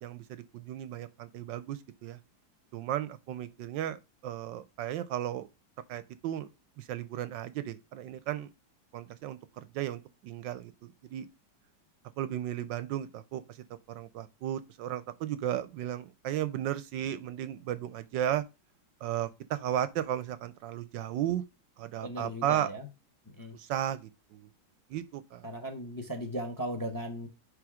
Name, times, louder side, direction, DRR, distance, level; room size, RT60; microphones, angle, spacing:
voice 1, 0.0-2.2 2.7-5.5 5.9-6.5 6.8-8.5 8.9-10.7 11.1-11.3 12.2-13.6 13.9-18.4 19.0-21.4 21.8-22.7 23.5-24.5 24.9-25.5, right 11 dB, 75° right, 1.2 m, -34 dB
voice 2, 22.0-22.8 23.4-23.5 25.4-27.3, equal, 15° left, 1.0 m, -37 dB
10.0 x 3.3 x 4.8 m
omnidirectional pair, 2.1 m